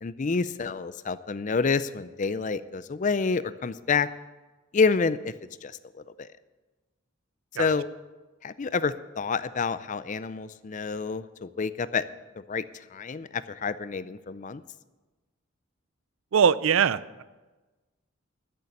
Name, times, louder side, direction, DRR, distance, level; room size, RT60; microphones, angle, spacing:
voice 1, 0.0-4.1 4.7-5.3 5.6-6.3 7.6-7.9 8.4-12.0 12.5-12.6 12.9-14.6, left 4 dB, 40° left, 15 dB, 0.5 m, -28 dB
voice 2, 16.3-17.2, right 7 dB, 85° right, 17 dB, 0.4 m, -22 dB
12.5 x 6.8 x 9.8 m, 1.2 s
head